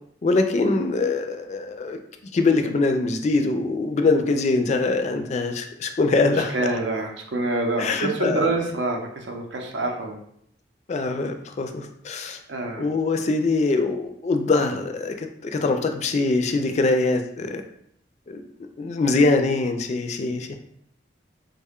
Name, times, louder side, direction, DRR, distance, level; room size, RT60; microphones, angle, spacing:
voice 1, 0.2-2.0 2.3-6.5 7.8-8.5 10.9-12.4 12.8-17.6 18.3-18.4 18.8-20.6, left 3 dB, 40° left, 6 dB, 0.3 m, -23 dB
voice 2, 6.3-10.2 12.5-12.9, right 2 dB, 90° right, 1 dB, 0.6 m, -26 dB
3.5 x 2.2 x 3.6 m, 0.71 s
head